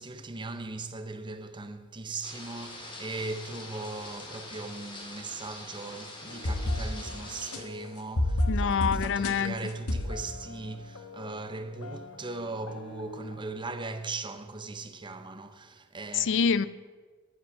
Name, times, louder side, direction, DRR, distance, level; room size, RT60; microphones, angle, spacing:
voice 1, 0.0-16.4, right 3 dB, 20° right, 0.7 m, -39 dB
sound 1, 2.2-7.6, left 2 dB, 25° left, 1.9 m, -44 dB
sound 2, 6.3-11.5 11.8-13.3, left 1 dB, 75° left, 1.1 m, -33 dB
voice 2, 8.5-9.6 16.1-16.7, left 6 dB, 55° left, 0.4 m, -26 dB
9.4 x 8.8 x 7.0 m
head